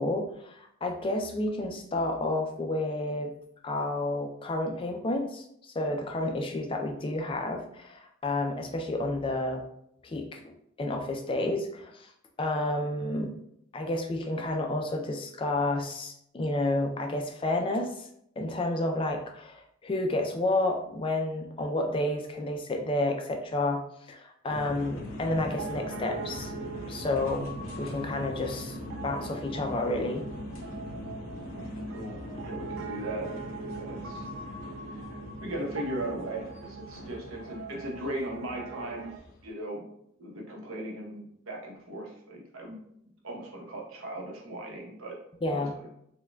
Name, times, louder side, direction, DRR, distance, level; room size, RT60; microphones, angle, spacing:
voice 1, 0.0-3.3 3.6-9.6 10.0-10.4 10.8-12.1 12.4-13.4 13.7-18.1 18.4-26.5 26.9-28.8 29.0-30.2 45.4-45.8, left 2 dB, 25° left, 3 dB, 0.3 m, -30 dB
sound 1, 24.5-39.5, left 1 dB, 90° left, 0.7 m, -41 dB
Piano, 25.5-39.2, right 5 dB, 60° right, 0.3 m, -43 dB
voice 2, 31.5-33.3 33.6-34.2 34.9-39.1 39.4-39.8 40.2-42.8 43.2-45.2 45.5-45.9, right 1 dB, 85° right, -1 dB, 0.9 m, -38 dB
4.3 x 2.2 x 2.2 m, 0.74 s
head